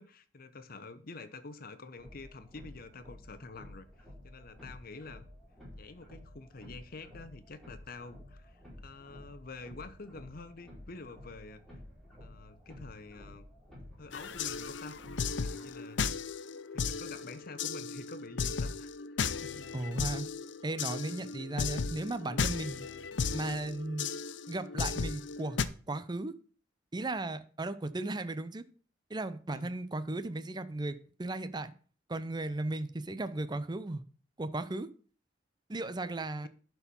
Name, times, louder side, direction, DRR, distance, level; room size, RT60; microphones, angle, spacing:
voice 1, 0.0-3.9 4.2-5.3 5.8-11.6 12.2-13.5 14.0-15.0 15.4-16.0 16.7-18.9 19.2-19.7 29.5-29.7, left 3 dB, 55° left, 0.9 m, -47 dB
sound 1, 2.0-15.6, left 1 dB, ahead, 4.6 m, -52 dB
sound 2, 14.1-25.6, left 5 dB, 85° left, 0.6 m, -35 dB
voice 2, 19.7-20.3 20.6-22.8 23.3-24.1 24.5-25.6 25.9-26.3 26.9-28.6 29.1-31.7 32.1-34.0 34.4-34.9 35.7-36.5, right 2 dB, 25° right, 0.6 m, -36 dB
11.5 x 4.6 x 5.4 m
head